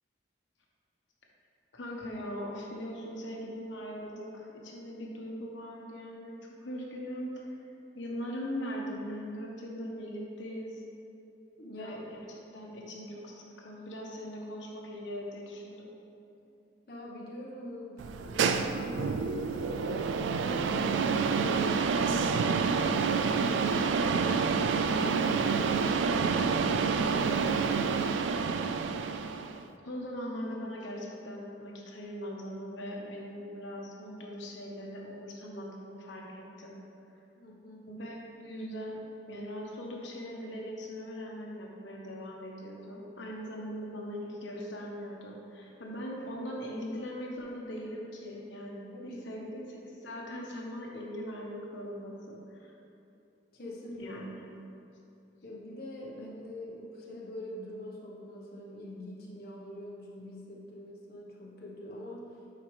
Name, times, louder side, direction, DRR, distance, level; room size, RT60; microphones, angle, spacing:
voice 1, 1.7-7.5 7.9-10.8 11.7-15.9 29.8-36.7 37.9-39.0 39.3-52.7 54.0-54.3, equal, 80° left, -2 dB, 1.1 m, -40 dB
voice 2, 11.6-12.0 16.9-27.7 37.4-37.9 48.9-49.2 53.5-54.1 55.4-62.4, left 1 dB, 50° left, -4 dB, 1.0 m, -44 dB
sound 1, 18.0-29.6, right 5 dB, 75° right, 0.3 m, -28 dB
8.9 x 4.9 x 3.2 m, 2.8 s
head